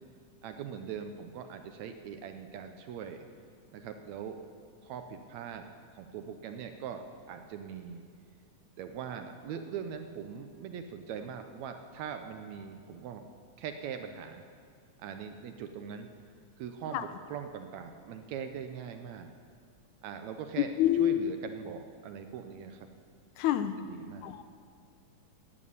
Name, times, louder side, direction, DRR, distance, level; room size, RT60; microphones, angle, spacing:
voice 1, 0.4-3.3 3.7-4.4 4.8-5.7 5.9-8.0 8.8-13.2 13.6-14.4 15.0-16.1 16.6-19.3 20.0-22.9 23.8-24.3, right 7 dB, 75° right, 7 dB, 1.7 m, -41 dB
voice 2, 20.8-21.2 23.4-23.8 24.2-24.4, left 12 dB, 80° left, 11 dB, 2.0 m, -27 dB
11.0 x 8.9 x 8.5 m, 2.1 s
omnidirectional pair, 3.6 m